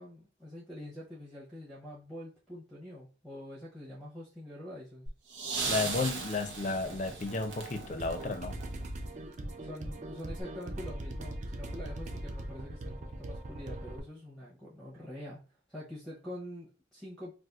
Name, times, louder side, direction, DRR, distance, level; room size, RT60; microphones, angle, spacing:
voice 1, 0.0-5.1 9.6-15.4 15.7-17.3, left 1 dB, ahead, -5 dB, 0.7 m, -45 dB
sound 1, 5.1-9.2 10.4-10.5, right 4 dB, 85° right, 0.8 m, -38 dB
voice 2, 5.7-8.6, left 3 dB, 40° left, 8 dB, 0.4 m, -33 dB
sound 2, 7.9-14.0, right 1 dB, 40° right, 0.4 m, -40 dB
4.1 x 2.4 x 2.3 m, 0.36 s
head